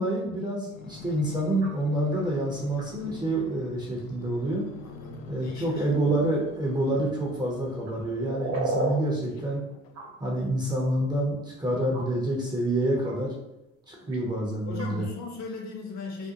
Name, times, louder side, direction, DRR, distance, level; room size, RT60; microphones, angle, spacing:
voice 1, 0.0-4.7 5.3-9.6 10.2-13.3 13.9-15.1, right 1 dB, 10° right, -3 dB, 0.6 m, -27 dB
sound 1, 0.7-8.6 9.2-10.5 11.1-11.2, left 4 dB, 75° left, 0.5 m, -47 dB
sound 2, 1.6-1.7 2.1-2.2 2.8-2.9 5.4-5.5 7.9-9.0 9.9-10.1 11.4-11.5 11.9-12.1 13.0-13.1 14.1-14.2 14.8-14.9, right 3 dB, 40° right, 0.8 m, -31 dB
voice 2, 4.8-5.9 6.7-7.1 14.7-16.3, left 3 dB, 40° left, 1 dB, 0.7 m, -38 dB
2.5 x 2.1 x 2.7 m, 0.93 s
hypercardioid pair, 70°, 41 cm